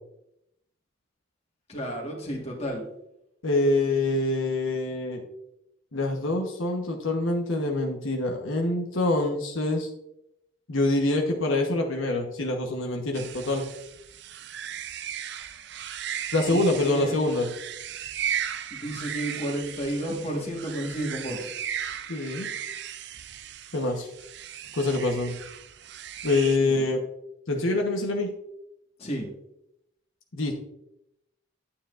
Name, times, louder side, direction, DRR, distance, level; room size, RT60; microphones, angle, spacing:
voice 1, 1.7-2.8 16.5-17.2 18.7-21.5 26.6-26.9 29.0-29.3, right 1 dB, 30° left, -1 dB, 1.5 m, -32 dB
voice 2, 3.4-5.2 5.9-9.9 10.7-13.6 16.3-17.5 22.1-22.5 23.7-24.1 24.7-25.4 26.2-27.0 27.5-28.3 30.3-30.5, left 2 dB, 80° left, 1 dB, 1.1 m, -25 dB
sound 1, 13.1-26.6, right 9 dB, 55° right, 0.4 m, -36 dB
9.7 x 8.7 x 2.5 m, 0.82 s
head